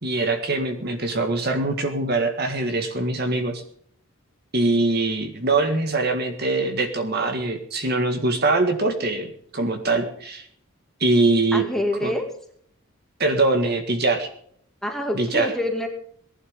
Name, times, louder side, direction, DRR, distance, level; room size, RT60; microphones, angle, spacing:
voice 1, 0.0-3.6 4.5-10.5 11.0-11.6 12.0-12.2 13.2-14.3 15.1-15.5, right 2 dB, 45° right, 6 dB, 1.8 m, -23 dB
voice 2, 11.5-12.3 14.8-15.9, left 1 dB, ahead, 2 dB, 2.3 m, -26 dB
19.0 x 11.0 x 5.3 m, 0.63 s
head